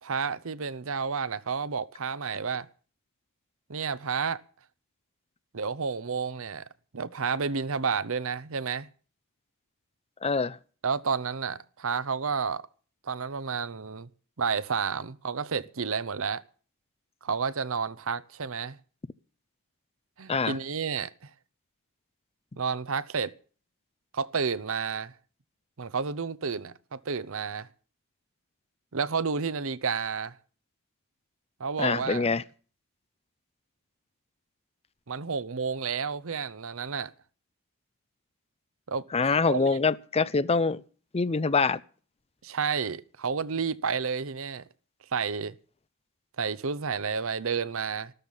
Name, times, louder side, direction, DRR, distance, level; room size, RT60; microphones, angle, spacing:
voice 1, 0.0-2.7 3.7-4.4 5.5-6.7 6.9-8.9 10.8-12.6 13.0-14.1 14.4-16.4 17.2-18.8 20.2-21.3 22.6-23.3 24.1-25.1 25.8-27.7 28.9-30.3 31.6-32.3 35.1-37.1 38.9-39.0 39.5-39.8 42.4-44.6 45.1-45.5 46.4-48.1, right 5 dB, 70° right, 0.8 m, -31 dB
voice 2, 10.2-10.6 20.3-20.6 31.8-32.4 39.1-40.8 41.1-41.8, left 4 dB, 30° left, 0.6 m, -25 dB
13.5 x 13.5 x 5.5 m
head